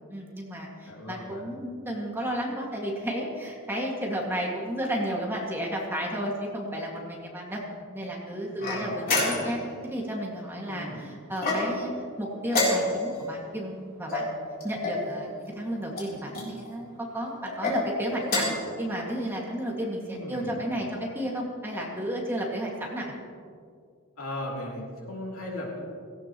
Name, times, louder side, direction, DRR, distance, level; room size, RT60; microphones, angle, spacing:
voice 1, 0.1-11.9 12.2-14.4 14.6-23.1, equal, 10° right, -2 dB, 2.1 m, -33 dB
voice 2, 0.9-1.4 8.6-9.5 10.6-11.0 20.0-20.6 24.2-25.8, left 1 dB, 80° left, -3 dB, 3.1 m, -37 dB
sound 1, 8.6-9.7 11.4-11.9 12.5-13.2 14.1-15.0 15.9-16.5 17.4-17.8 18.2-18.7, left 2 dB, 45° left, 3.7 m, -28 dB
17.0 x 16.0 x 3.1 m, 2.3 s
head